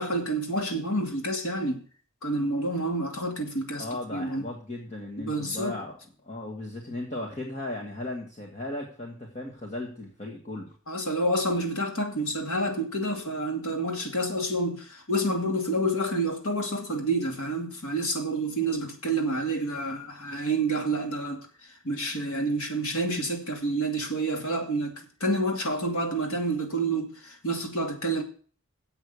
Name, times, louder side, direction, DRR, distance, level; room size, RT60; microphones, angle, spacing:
voice 1, 0.0-1.8 2.2-4.5 5.2-5.8 10.9-21.4 21.8-28.2, right 1 dB, 75° left, 2.6 m, -28 dB
voice 2, 3.8-6.0 6.2-10.7, left 1 dB, 30° left, 1.6 m, -36 dB
7.9 x 6.6 x 8.2 m
head